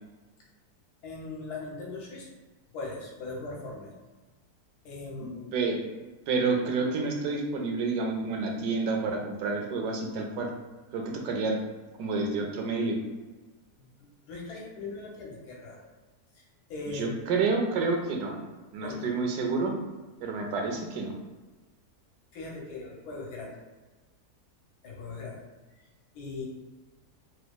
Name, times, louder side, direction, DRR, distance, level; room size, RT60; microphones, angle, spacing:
voice 1, 1.0-2.3 2.7-3.9 4.8-5.7 13.8-15.9 16.3-16.4 16.7-17.3 18.8-19.1 22.3-23.5 24.8-25.4 25.8-25.9 26.1-26.5, left 3 dB, 85° left, -3 dB, 1.4 m, -39 dB
voice 2, 6.3-10.5 10.9-11.6 12.0-13.0 16.9-18.4 18.7-19.7 20.2-21.1, right 4 dB, 85° right, 1 dB, 1.2 m, -29 dB
4.4 x 2.5 x 2.3 m, 1.2 s
omnidirectional pair, 1.7 m